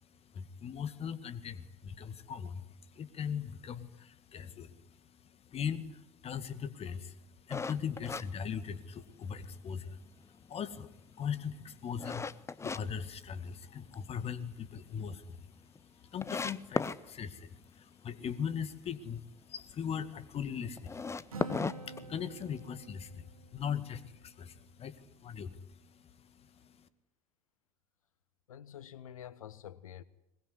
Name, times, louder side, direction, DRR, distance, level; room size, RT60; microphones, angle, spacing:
voice 1, 0.0-26.9, left 7 dB, 35° left, 2.1 m, -40 dB
sound 1, 7.5-9.2 9.6-9.7 10.3-12.8 13.2-13.9 14.3-14.4 14.8-14.9 15.0-15.1 15.7-15.8 16.2-17.0 20.8-22.6, left 4 dB, 15° left, 0.9 m, -36 dB
Acoustic guitar, 21.3-25.0, right 3 dB, 80° right, 3.4 m, -48 dB
voice 2, 28.5-30.0, left 10 dB, 75° left, 1.2 m, -48 dB
22.0 x 21.5 x 9.8 m
figure-of-eight pair, 70°, 18 cm